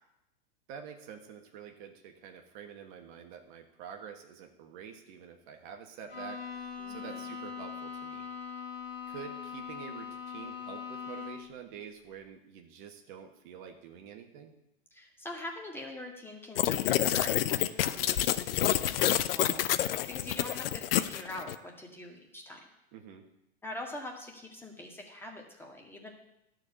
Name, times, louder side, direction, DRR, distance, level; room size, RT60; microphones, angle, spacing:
voice 1, 0.7-6.4 6.9-8.3 9.1-14.5 22.9-23.2, right 7 dB, 55° right, 4 dB, 1.6 m, -47 dB
Bowed string instrument, 6.1-11.6, left 6 dB, 90° left, 2.0 m, -41 dB
voice 2, 6.8-7.2 14.9-22.6 23.6-26.1, left 1 dB, 5° left, 0 dB, 2.0 m, -44 dB
sound 1, 16.6-21.6, left 12 dB, 70° left, 0.6 m, -28 dB
12.0 x 4.8 x 8.2 m, 0.86 s
hypercardioid pair, 110°, 30 cm